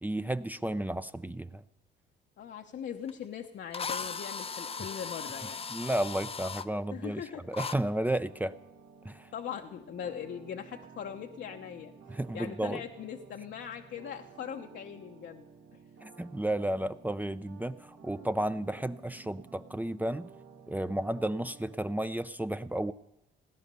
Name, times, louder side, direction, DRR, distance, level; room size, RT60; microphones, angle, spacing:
voice 1, 0.0-1.6 5.7-7.2 7.5-8.6 9.0-9.3 12.1-12.8 16.0-20.3 20.7-22.9, right 1 dB, 10° right, 12 dB, 0.5 m, -32 dB
voice 2, 2.4-5.6 6.9-7.5 9.3-11.9 12.3-15.5, left 8 dB, 65° left, 4 dB, 0.9 m, -40 dB
Drill, 3.1-3.2 3.7-6.7 7.5-7.8, left 5 dB, 30° left, 0.7 m, -37 dB
sound 1, 8.2-21.8, right 5 dB, 70° right, 1.9 m, -54 dB
17.0 x 11.0 x 6.8 m, 0.86 s
cardioid pair, 90°, 20 cm